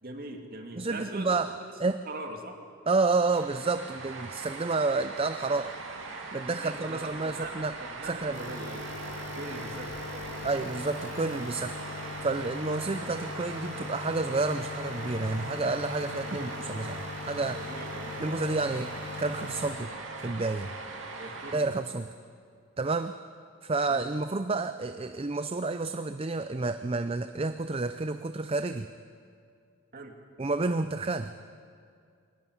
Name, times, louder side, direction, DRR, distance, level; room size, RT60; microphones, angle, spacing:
voice 1, 0.0-1.3 1.8-2.6 6.5-7.5 7.8-8.9 9.2-10.3 16.2-16.6 17.5-18.2 21.2-21.7 23.9-24.1 29.9-30.1, right 2 dB, 45° right, 3 dB, 2.4 m, -42 dB
voice 2, 0.8-1.5 1.8-2.0 2.9-5.7 6.3-7.7 8.0-8.4 10.4-11.8 12.2-17.6 18.2-18.9 19.2-19.9 20.2-20.8 21.5-22.1 22.8-23.2 23.6-28.9 30.4-31.3, right 3 dB, 25° right, 10 dB, 0.5 m, -30 dB
sound 1, 3.3-21.6, right 3 dB, 60° right, 2.9 m, -41 dB
sound 2, 8.3-19.8, left 3 dB, 55° left, 3.5 m, -40 dB
21.5 x 18.5 x 9.8 m, 2.3 s
head